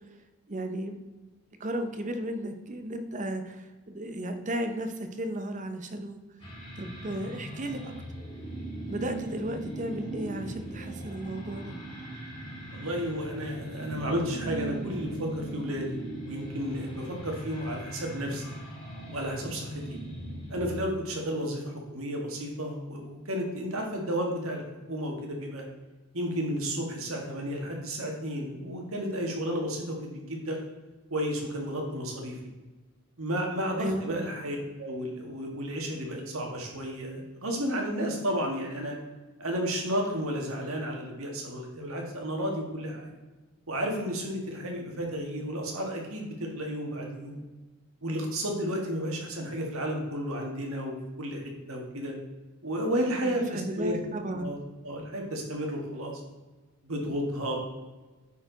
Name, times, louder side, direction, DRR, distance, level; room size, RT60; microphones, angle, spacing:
voice 1, 0.5-1.0 1.6-6.2 6.8-7.9 8.9-11.8 33.8-34.3 53.2-54.5, right 1 dB, 35° right, 7 dB, 0.7 m, -34 dB
sound 1, 6.4-20.6, right 1 dB, 20° left, 1.8 m, -39 dB
voice 2, 12.7-16.0 16.2-18.4 19.1-20.0 20.5-24.6 24.9-25.6 26.1-30.6 31.1-32.4 33.2-39.0 39.4-43.1 43.7-47.4 48.0-51.4 51.7-52.1 52.6-54.0 54.3-54.6 54.8-56.1 56.8-57.6, equal, 65° right, 1 dB, 1.7 m, -32 dB
9.4 x 4.4 x 4.0 m, 1.2 s
head